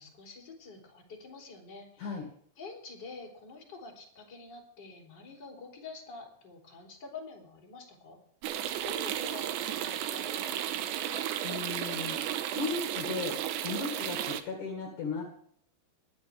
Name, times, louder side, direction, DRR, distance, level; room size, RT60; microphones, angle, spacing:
voice 1, 0.0-2.1 2.6-8.2 8.8-11.3, left 4 dB, 25° left, 1 dB, 3.5 m, -47 dB
sound 1, 8.4-14.4, right 11 dB, 80° right, 3.2 m, -34 dB
voice 2, 11.4-13.3 13.6-15.2, left 4 dB, 50° left, 2 dB, 3.1 m, -36 dB
21.5 x 10.0 x 3.5 m, 0.64 s
omnidirectional pair, 5.2 m